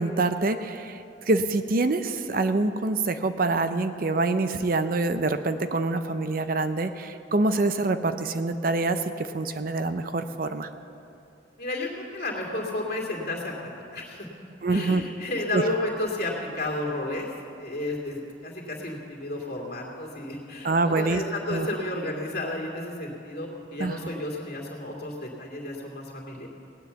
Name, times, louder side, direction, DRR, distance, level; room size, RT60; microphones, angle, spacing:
voice 1, 0.0-10.7 14.6-15.1 15.5-15.6 20.6-21.2 21.5-21.7 23.8-24.0, right 2 dB, 45° right, 9 dB, 0.6 m, -25 dB
voice 2, 11.6-14.3 14.7-17.3 17.6-26.5, left 1 dB, 50° left, -2 dB, 2.6 m, -32 dB
17.5 x 10.0 x 7.0 m, 2.7 s
head